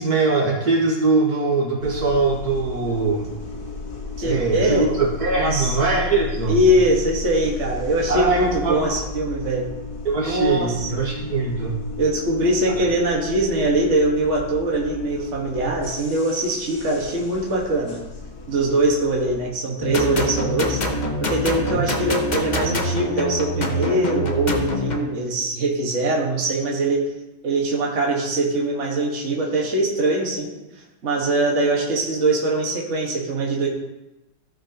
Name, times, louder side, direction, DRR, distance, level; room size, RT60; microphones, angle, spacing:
voice 1, 0.0-3.3 4.2-6.6 8.1-9.0 10.1-11.8 12.8-12.9 21.7-21.8, right 3 dB, 55° right, -3 dB, 2.0 m, -22 dB
sound 1, 1.8-19.5, left 4 dB, 55° left, 1.9 m, -34 dB
voice 2, 4.2-4.8 5.3-5.7 6.5-9.7 10.2-11.1 12.0-18.0 18.5-20.8 21.2-27.1 27.4-30.5 31.0-33.7, right 1 dB, 40° right, -2 dB, 1.8 m, -22 dB
sound 2, 19.8-25.0, left 1 dB, 35° left, 0.8 m, -25 dB
15.5 x 6.0 x 2.9 m, 0.96 s
omnidirectional pair, 2.0 m